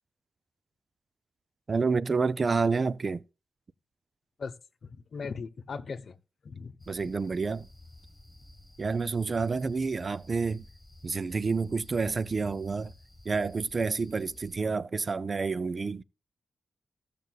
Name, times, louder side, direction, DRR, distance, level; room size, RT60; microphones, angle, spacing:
voice 1, 1.7-3.2 6.9-7.7 8.8-10.7 11.0-12.9 13.3-16.0, right 4 dB, 40° right, 0.5 m, -29 dB
voice 2, 4.4-6.2 6.4-6.8, left 5 dB, 60° left, 0.9 m, -39 dB
sound 1, 6.8-14.5, left 2 dB, 10° left, 5.5 m, -53 dB
15.5 x 6.7 x 2.4 m
cardioid pair, 90°, 0 cm